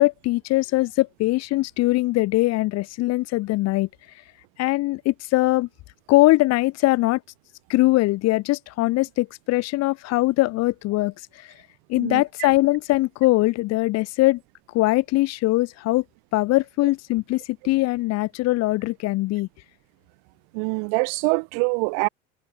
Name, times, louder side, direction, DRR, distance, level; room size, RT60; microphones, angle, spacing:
voice 1, 0.0-3.9 4.6-5.7 6.1-7.2 7.7-11.5 11.9-14.4 14.7-16.0 16.3-19.5, left 19 dB, 50° left, 0.8 m, -21 dB
voice 2, 20.5-22.1, right 40 dB or more, 60° right, 1.0 m, -24 dB
hypercardioid pair, 80°, 34 cm